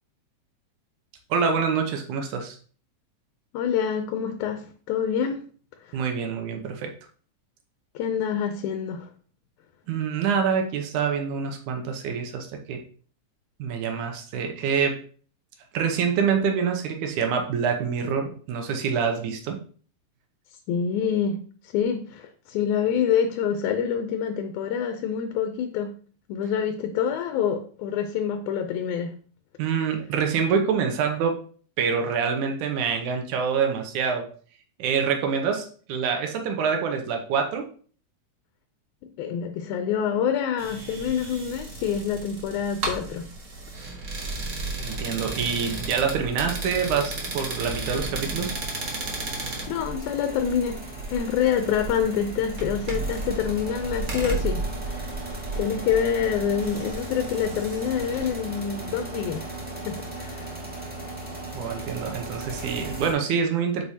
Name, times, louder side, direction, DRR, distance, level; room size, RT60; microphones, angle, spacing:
voice 1, 1.3-2.6 5.9-6.9 9.9-12.8 13.6-15.0 15.7-19.6 29.6-31.4 31.8-34.3 34.8-37.7 44.8-48.6 61.5-63.8, right 6 dB, 90° right, 2.4 m, -26 dB
voice 2, 3.5-5.4 5.8-6.0 8.0-9.1 20.7-25.9 26.3-29.1 39.2-43.3 49.7-50.8 51.1-55.1 55.6-59.5 59.9-60.5, left 8 dB, 90° left, 2.1 m, -26 dB
sound 1, 40.6-58.3, right 2 dB, 50° right, 0.9 m, -34 dB
sound 2, 44.8-63.1, right 2 dB, 5° right, 0.7 m, -38 dB
8.3 x 4.9 x 2.8 m
omnidirectional pair, 3.4 m